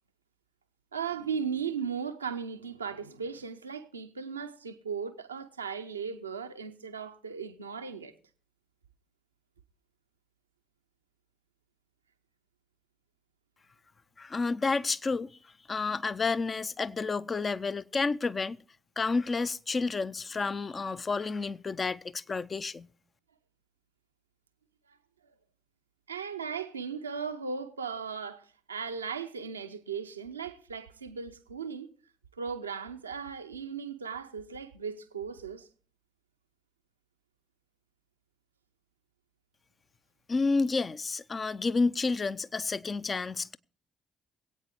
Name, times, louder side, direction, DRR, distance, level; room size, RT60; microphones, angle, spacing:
voice 1, 0.9-8.1 26.1-31.9 32.4-35.7, right 6 dB, 85° right, 0.7 m, -37 dB
voice 2, 14.2-15.3 15.7-18.6 19.0-22.9 40.3-43.6, left 4 dB, 35° left, 0.6 m, -30 dB
21.0 x 8.8 x 4.5 m
figure-of-eight pair, 45°, 0 cm